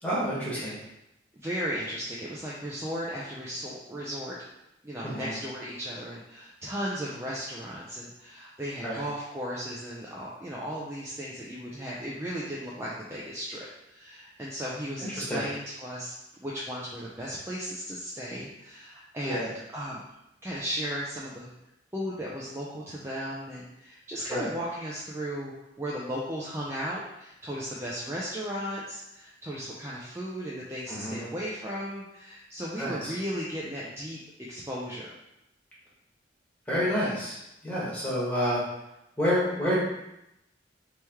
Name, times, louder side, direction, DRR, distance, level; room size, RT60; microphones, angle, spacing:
voice 1, 0.0-0.7 5.0-5.3 8.8-9.0 15.2-15.4 19.2-19.5 24.3-24.5 30.9-31.2 32.8-33.1 36.7-38.6 39.2-39.8, equal, 10° left, -8 dB, 1.1 m, -29 dB
voice 2, 1.3-4.4 4.8-16.1 16.4-20.0 20.4-21.5 21.9-34.2 34.5-35.1, equal, 15° right, -6 dB, 0.4 m, -36 dB
3.1 x 3.0 x 3.4 m, 0.87 s
head